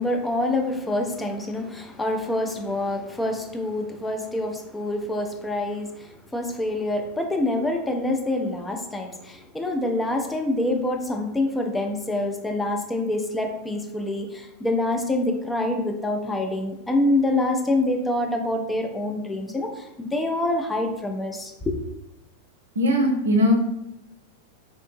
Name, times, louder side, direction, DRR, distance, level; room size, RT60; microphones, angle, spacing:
voice 1, 0.0-21.8, left 1 dB, 10° left, 2 dB, 0.4 m, -26 dB
voice 2, 22.8-23.5, left 1 dB, 70° right, 1 dB, 0.5 m, -19 dB
2.7 x 2.6 x 2.5 m, 0.87 s
figure-of-eight pair, 90°, 0 cm